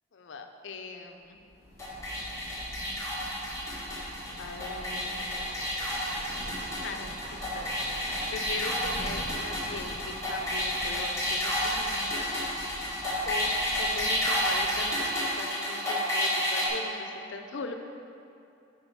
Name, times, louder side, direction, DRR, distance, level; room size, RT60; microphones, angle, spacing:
voice 1, 0.1-1.4 4.4-5.6 6.8-12.4 13.2-13.5 13.8-17.7, left 4 dB, 85° left, 5 dB, 0.6 m, -40 dB
Thunder / Rain, 1.2-15.6, equal, 60° right, 1.6 m, -45 dB
sound 1, 1.8-16.7, equal, 15° left, 1.3 m, -31 dB
sound 2, 4.1-10.7, right 1 dB, 35° right, 1.7 m, -49 dB
8.1 x 5.2 x 4.1 m, 2.6 s
head